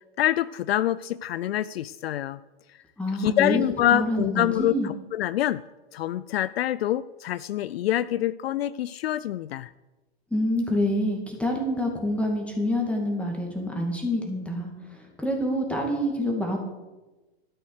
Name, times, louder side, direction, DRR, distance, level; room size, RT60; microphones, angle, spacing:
voice 1, 0.2-2.4 3.2-5.6 5.9-9.7, left 12 dB, 70° left, 16 dB, 0.5 m, -26 dB
voice 2, 3.0-3.6 3.9-4.9 10.3-16.6, left 1 dB, 5° left, 0 dB, 2.3 m, -27 dB
12.0 x 7.9 x 6.5 m, 1.1 s
hypercardioid pair, 105°, 32 cm